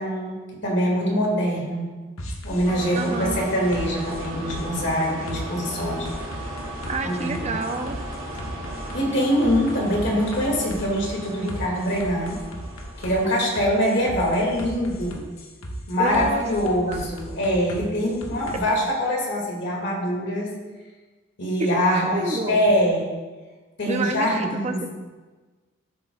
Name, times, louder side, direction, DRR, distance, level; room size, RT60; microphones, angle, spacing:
voice 1, 0.0-1.9 2.4-6.1 7.0-7.6 8.9-12.4 13.0-15.2 15.9-20.5 21.4-23.1 23.8-24.8, equal, 55° left, -2 dB, 2.3 m, -24 dB
sound 1, 2.2-18.6, equal, 85° left, 1.3 m, -37 dB
sound 2, 2.6-13.9, right 1 dB, 70° right, 2.3 m, -36 dB
voice 2, 2.9-3.5 6.9-8.0 16.0-17.1 21.6-22.6 23.9-24.9, right 2 dB, 30° right, 6 dB, 0.7 m, -29 dB
13.0 x 7.7 x 2.4 m, 1.3 s
head